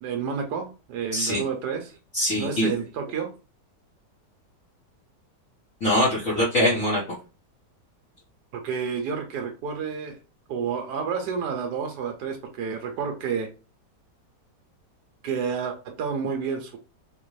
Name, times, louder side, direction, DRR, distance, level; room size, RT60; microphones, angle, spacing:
voice 1, 0.0-2.0 2.4-3.3 8.5-10.2 10.5-13.5 15.2-16.8, right 6 dB, 75° right, 3 dB, 1.2 m, -30 dB
voice 2, 1.1-1.5 2.1-2.8 5.8-7.0, left 1 dB, 50° left, -7 dB, 1.4 m, -23 dB
4.0 x 2.5 x 3.1 m, 0.32 s
omnidirectional pair, 1.9 m